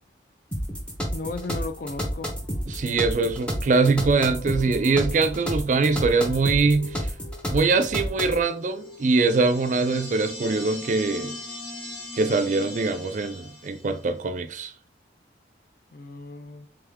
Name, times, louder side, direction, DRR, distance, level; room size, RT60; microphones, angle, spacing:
sound 1, 0.5-8.4, equal, 5° left, 0.6 m, -30 dB
voice 1, 1.1-2.3 15.9-16.7, left 3 dB, 50° left, 0.5 m, -35 dB
sound 2, 2.0-12.7, left 1 dB, 90° left, 1.7 m, -50 dB
voice 2, 2.7-7.1 7.5-11.3 12.2-14.7, right 3 dB, 40° right, 0.4 m, -23 dB
sound 3, 8.7-14.1, left 2 dB, 25° left, 1.8 m, -39 dB
3.5 x 3.4 x 3.4 m
head